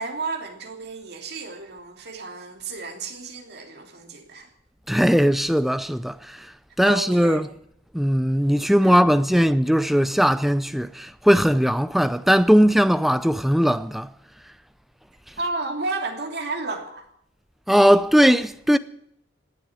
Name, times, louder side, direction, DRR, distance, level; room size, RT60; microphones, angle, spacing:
voice 1, 0.0-4.5 6.8-7.4 8.8-9.4 15.4-17.1, right 3 dB, 55° right, 3.0 m, -32 dB
voice 2, 4.9-6.5 6.8-7.5 7.9-14.1 17.7-18.8, equal, ahead, 0.5 m, -19 dB
17.5 x 8.2 x 9.5 m
head